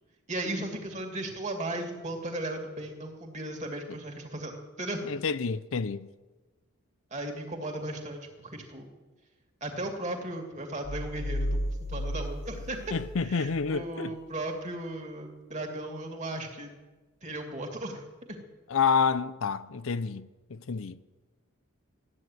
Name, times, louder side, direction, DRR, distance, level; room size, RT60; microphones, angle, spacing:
voice 1, 0.3-5.2 7.1-8.9 9.6-16.7 17.2-18.0 18.3-18.4, right 1 dB, 35° right, 2.5 m, -36 dB
voice 2, 5.1-6.1 12.9-14.1 18.7-21.0, left 5 dB, 70° left, 0.6 m, -29 dB
sound 1, 10.8-13.5, equal, 30° left, 1.0 m, -33 dB
14.5 x 9.6 x 9.2 m
head